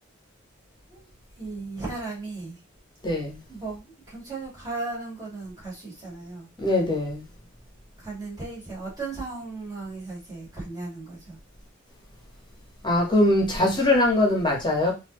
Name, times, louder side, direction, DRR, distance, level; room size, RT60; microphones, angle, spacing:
voice 1, 1.4-2.6 3.5-6.5 8.0-11.4, right 3 dB, 20° right, -6 dB, 2.1 m, -36 dB
voice 2, 3.0-3.4 6.6-7.2 12.8-14.9, left 1 dB, 20° left, 0 dB, 1.2 m, -22 dB
4.0 x 2.7 x 3.0 m, 0.27 s
head